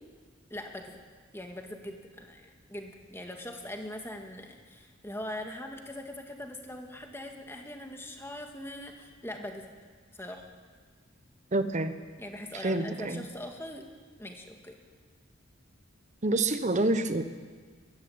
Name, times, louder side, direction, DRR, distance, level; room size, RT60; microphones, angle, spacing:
voice 1, 0.5-1.0 1.3-9.7 10.2-10.5 12.2-13.9 14.2-14.8, left 1 dB, 10° left, 3 dB, 2.0 m, -41 dB
voice 2, 11.5-11.9 12.6-13.2 16.2-17.2, right 2 dB, 35° right, 10 dB, 1.1 m, -27 dB
21.5 x 14.0 x 8.8 m, 1.6 s
head